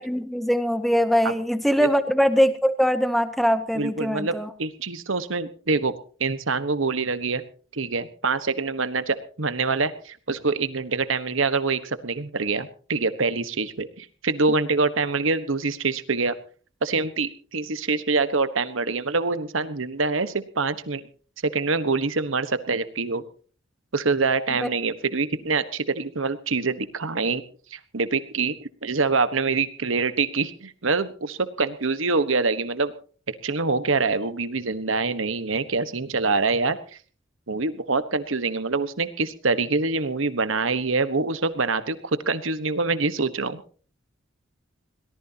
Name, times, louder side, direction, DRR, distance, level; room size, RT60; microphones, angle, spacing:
voice 1, 0.0-4.5 24.6-24.7, equal, ahead, 10 dB, 0.7 m, -22 dB
voice 2, 3.7-5.9 6.2-7.4 7.7-16.4 16.8-21.0 21.4-23.2 23.9-27.4 27.7-32.9 33.3-36.8 37.5-43.6, right 4 dB, 85° right, 12 dB, 1.3 m, -25 dB
22.5 x 18.5 x 2.9 m, 0.40 s
head